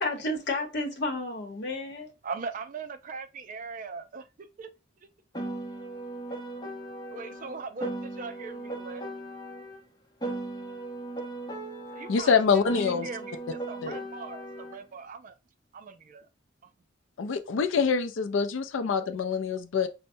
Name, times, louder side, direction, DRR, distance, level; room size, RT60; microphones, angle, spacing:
voice 1, 0.0-2.1, left 2 dB, 60° left, 0.9 m, -31 dB
voice 2, 2.2-4.2 4.6-4.7 7.1-9.0 11.9-12.4 12.8-15.3 15.7-16.3, right 4 dB, 45° right, 0.4 m, -40 dB
Piano, 5.3-9.8 10.2-14.8, right 2 dB, 20° left, 0.8 m, -37 dB
voice 3, 12.1-13.1 13.8-14.0 17.2-19.9, left 5 dB, 80° left, 0.4 m, -25 dB
5.4 x 2.1 x 2.6 m
head